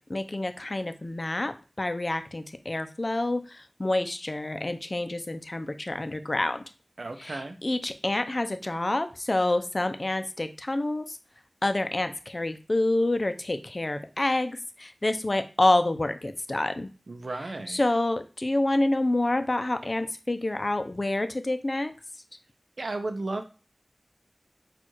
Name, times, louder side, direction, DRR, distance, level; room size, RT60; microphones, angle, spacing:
voice 1, 0.1-6.6 7.2-11.2 11.6-16.9 17.7-21.9, left 2 dB, 45° left, 9 dB, 0.6 m, -28 dB
voice 2, 7.0-7.6 17.1-17.8 22.8-23.4, right 2 dB, 75° right, 7 dB, 0.5 m, -34 dB
4.4 x 2.4 x 4.5 m, 0.33 s
wide cardioid pair, 55°, 0 cm